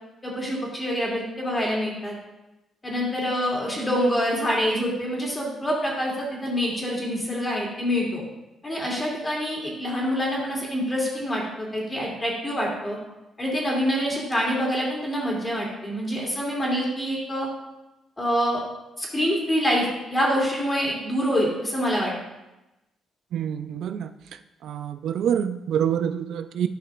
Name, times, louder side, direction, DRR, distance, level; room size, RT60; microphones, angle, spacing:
voice 1, 0.2-2.1 2.8-8.2 8.6-13.0 13.4-17.5 18.2-18.6 19.0-22.1, equal, 20° left, -3 dB, 2.6 m, -26 dB
voice 2, 23.3-24.1 24.6-26.7, right 9 dB, 75° right, 9 dB, 0.4 m, -26 dB
11.5 x 5.5 x 2.5 m, 0.98 s
cardioid pair, 90°, 0 cm